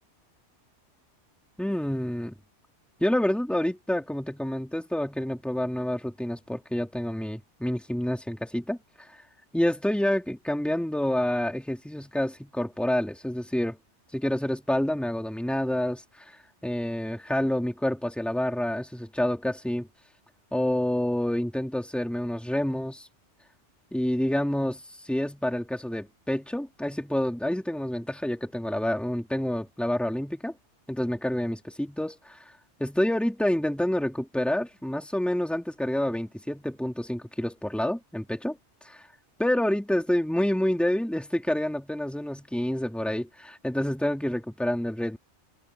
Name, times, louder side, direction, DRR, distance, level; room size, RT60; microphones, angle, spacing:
voice 1, 1.6-2.3 3.0-8.8 9.5-13.8 14.1-16.3 16.6-19.9 20.5-23.1 23.9-30.5 30.9-32.4 32.8-38.6 38.8-39.0 39.4-45.2, left 1 dB, ahead, 2.5 m, -28 dB
omnidirectional pair, 1.2 m